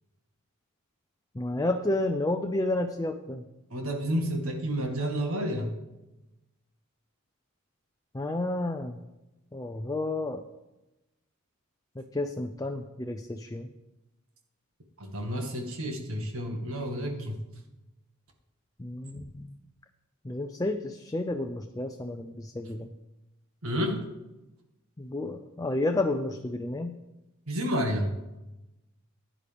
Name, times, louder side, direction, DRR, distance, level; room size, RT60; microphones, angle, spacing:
voice 1, 1.3-3.4 8.1-9.0 9.5-10.4 12.0-13.7 18.8-19.6 20.2-22.9 25.0-26.9, left 2 dB, 15° left, 5 dB, 0.5 m, -31 dB
voice 2, 3.7-5.7 15.0-17.4 23.6-24.0 27.5-28.1, equal, 70° right, 3 dB, 1.7 m, -30 dB
15.5 x 9.9 x 3.4 m, 0.99 s
head